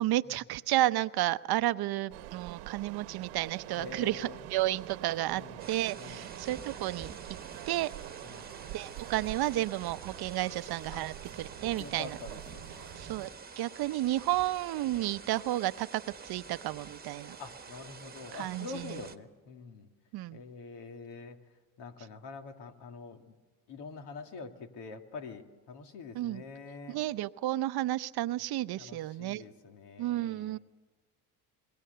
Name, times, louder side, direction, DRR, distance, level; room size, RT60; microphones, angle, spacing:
voice 1, 0.0-5.4 5.7-7.1 7.7-7.9 8.7-12.2 13.0-13.3 13.6-17.4 18.3-19.0 20.1-20.4 26.1-26.4 26.9-29.4 30.0-30.6, right 15 dB, 55° right, 14 dB, 0.8 m, -32 dB
sound 1, 2.1-13.3, right 15 dB, 85° right, 1.2 m, -46 dB
voice 2, 3.8-4.5 5.3-5.6 6.0-6.3 8.2-8.5 10.9-11.1 11.8-13.2 17.4-19.9 20.3-21.4 21.8-23.4 23.7-27.0 28.8-30.6, left 4 dB, 65° left, 5 dB, 2.6 m, -46 dB
sound 2, 5.6-19.2, right 5 dB, 20° right, 1.4 m, -48 dB
27.5 x 21.5 x 6.8 m, 1.3 s
supercardioid pair, 75°, 44 cm